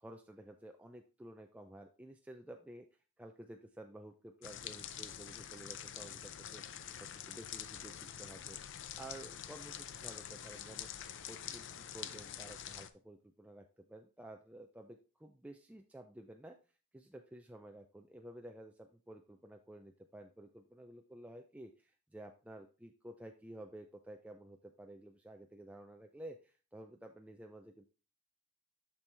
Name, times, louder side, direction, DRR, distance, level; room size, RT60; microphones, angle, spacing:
voice 1, 0.0-2.9 3.2-8.6 9.0-16.6 16.9-27.9, right 1 dB, 5° right, 3 dB, 0.4 m, -52 dB
sound 1, 4.4-12.9, left 9 dB, 60° left, 0.5 m, -46 dB
7.1 x 6.1 x 3.3 m, 0.34 s
head